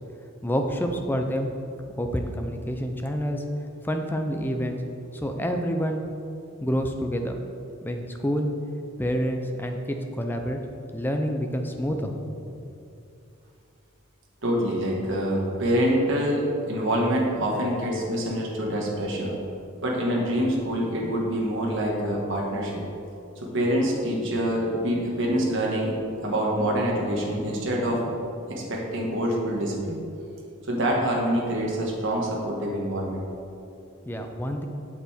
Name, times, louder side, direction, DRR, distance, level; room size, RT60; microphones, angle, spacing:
voice 1, 0.4-1.5 1.9-3.4 3.8-4.8 5.1-6.0 6.6-7.4 7.8-8.5 9.0-10.6 10.9-12.1 34.0-34.7, equal, 10° left, 4 dB, 0.5 m, -28 dB
voice 2, 14.4-19.3 19.8-22.8 23.4-28.0 28.5-30.0 30.7-33.2, equal, 55° right, -3 dB, 1.6 m, -26 dB
8.2 x 6.7 x 4.4 m, 2.6 s
head